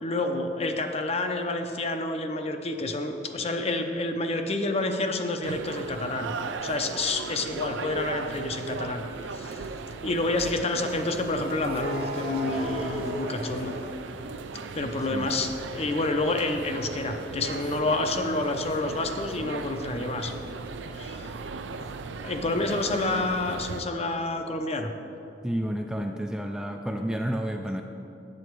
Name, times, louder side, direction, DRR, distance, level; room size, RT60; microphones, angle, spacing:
voice 1, 0.0-6.3 6.6-9.6 10.0-13.7 14.7-20.3 20.6-21.4 21.7-21.9 22.2-24.9, left 2 dB, 35° left, 6 dB, 0.6 m, -29 dB
sound 1, 5.4-23.8, right 4 dB, 80° right, 0.5 m, -37 dB
sound 2, 10.9-14.8 15.2-18.8, right 1 dB, 55° right, 1.3 m, -39 dB
voice 2, 25.4-27.8, equal, 5° right, 3 dB, 0.3 m, -30 dB
8.6 x 7.5 x 4.6 m, 2.8 s
head